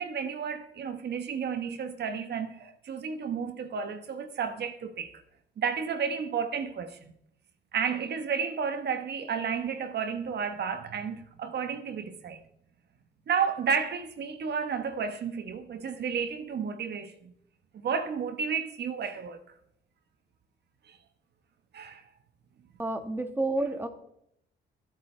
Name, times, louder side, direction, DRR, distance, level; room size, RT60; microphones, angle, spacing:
voice 1, 0.0-5.2 5.6-7.1 7.7-12.4 13.3-17.3 17.7-19.4 20.9-21.0 21.7-22.0, right 6 dB, 55° right, 1.1 m, -32 dB
voice 2, 22.8-23.9, right 2 dB, 10° right, 1.6 m, -30 dB
24.0 x 8.4 x 3.3 m
cardioid pair, 90°, 20 cm